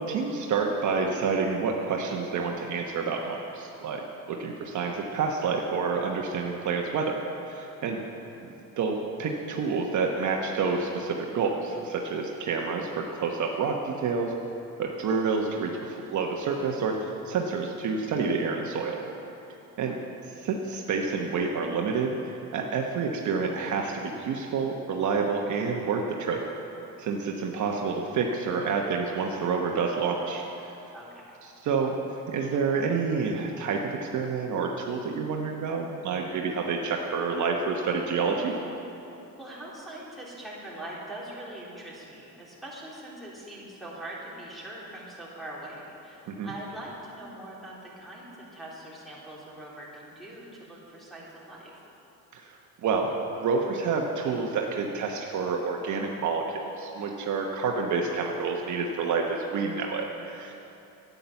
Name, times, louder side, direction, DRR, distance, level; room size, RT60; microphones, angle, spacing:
voice 1, 0.0-4.0 4.3-7.2 7.5-8.0 8.4-14.3 14.8-19.0 19.8-20.0 20.3-26.4 27.0-30.4 31.4-31.9 32.3-38.5 46.3-46.5 52.3-53.1 53.4-60.5, right 5 dB, 55° right, 1 dB, 1.1 m, -28 dB
voice 2, 30.9-31.4 39.4-51.8, right 1 dB, ahead, -7 dB, 3.4 m, -42 dB
9.9 x 9.4 x 7.1 m, 2.9 s
cardioid pair, 105°, 36 cm